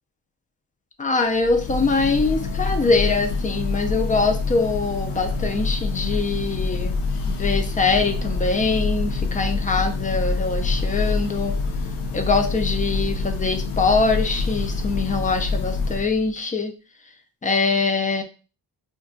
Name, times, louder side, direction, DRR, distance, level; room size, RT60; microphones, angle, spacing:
voice 1, 1.0-6.9 7.3-11.5 12.1-16.7 17.4-18.2, left 3 dB, 20° left, 6 dB, 0.4 m, -23 dB
Church bell, 1.3-16.3, left 3 dB, 80° left, 0.7 m, -26 dB
2.4 x 2.2 x 3.7 m, 0.34 s
cardioid pair, 110°, 41 cm